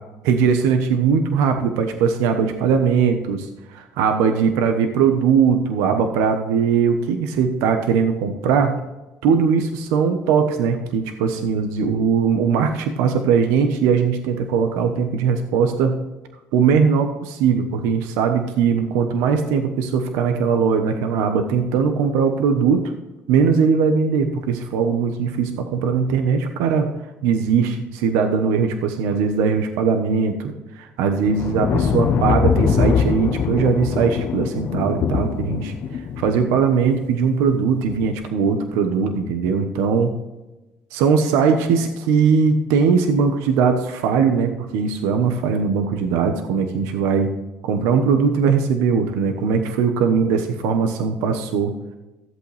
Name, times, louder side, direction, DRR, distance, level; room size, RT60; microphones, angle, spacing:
voice 1, 0.2-3.5 4.0-8.8 9.2-16.0 16.5-22.9 23.3-26.9 27.2-40.1 40.9-47.3 47.6-51.9, right 6 dB, 85° right, 6 dB, 1.2 m, -20 dB
sound 1, 31.2-36.7 37.9-38.2, left 6 dB, 55° left, 0.9 m, -22 dB
14.5 x 8.0 x 3.4 m, 1.0 s
cardioid pair, 115°, 5 cm